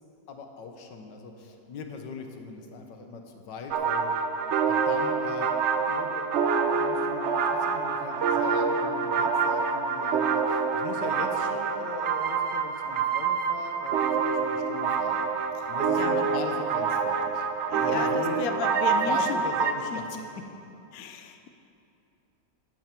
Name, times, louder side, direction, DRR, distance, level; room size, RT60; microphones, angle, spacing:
voice 1, 0.3-4.1 4.7-15.2 15.7-17.4 17.8-18.5 19.1-20.2, left 4 dB, 85° left, 4 dB, 1.7 m, -40 dB
sound 1, 3.7-19.7, right 5 dB, 60° right, 0.7 m, -26 dB
voice 2, 15.5-16.3 17.7-19.4 19.9-20.0 20.9-21.5, left 7 dB, 65° left, 7 dB, 1.0 m, -35 dB
12.5 x 11.0 x 4.5 m, 2.7 s
omnidirectional pair, 1.9 m